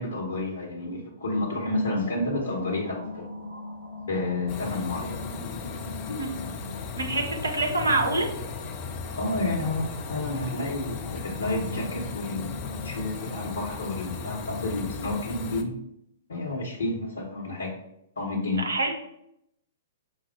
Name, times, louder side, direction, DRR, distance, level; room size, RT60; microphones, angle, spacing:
voice 1, 0.0-3.3 4.1-5.1 9.2-12.5 12.8-15.7 16.3-17.7 18.2-18.6, left 2 dB, 60° left, -4 dB, 1.0 m, -30 dB
sound 1, 2.3-14.7, left 2 dB, 85° right, 1.5 m, -41 dB
sound 2, 4.5-15.6, left 5 dB, 35° left, 0.5 m, -37 dB
voice 2, 7.0-8.3 18.6-19.0, right 2 dB, 70° right, 2 dB, 0.9 m, -26 dB
5.4 x 2.0 x 4.4 m, 0.77 s
figure-of-eight pair, 110°, 0 cm